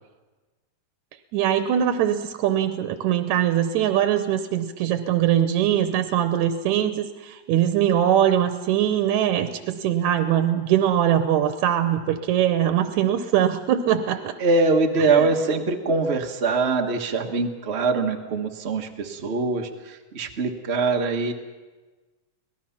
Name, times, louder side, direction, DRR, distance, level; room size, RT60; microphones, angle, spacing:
voice 1, 1.3-14.4 15.0-15.3, right 10 dB, 85° right, 8 dB, 2.2 m, -22 dB
voice 2, 14.4-21.3, right 3 dB, 65° right, 4 dB, 0.6 m, -23 dB
25.0 x 18.5 x 5.8 m, 1.2 s
omnidirectional pair, 3.3 m